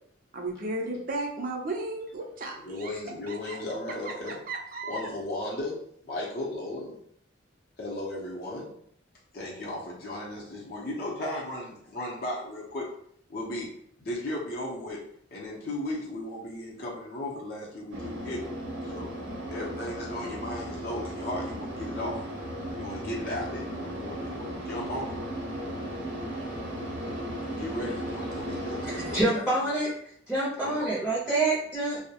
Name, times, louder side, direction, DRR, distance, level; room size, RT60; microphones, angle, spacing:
voice 1, 0.3-2.9 3.3-3.6 4.1-5.1, right 2 dB, 45° right, 0 dB, 0.4 m, -35 dB
voice 2, 2.6-4.4 4.9-5.8 6.0-7.0 7.8-8.8 9.3-12.9 13.3-13.7 14.0-15.0 15.3-18.4 18.8-19.1 19.5-22.2 22.7-25.1 27.5-29.4 30.6-30.9, left 1 dB, 50° left, -4 dB, 0.6 m, -35 dB
sound 1, 17.9-29.2, equal, 75° right, 0.7 m, -36 dB
voice 3, 29.1-29.9 30.3-32.0, right 2 dB, 5° left, -9 dB, 0.5 m, -26 dB
2.2 x 2.0 x 2.8 m, 0.65 s
head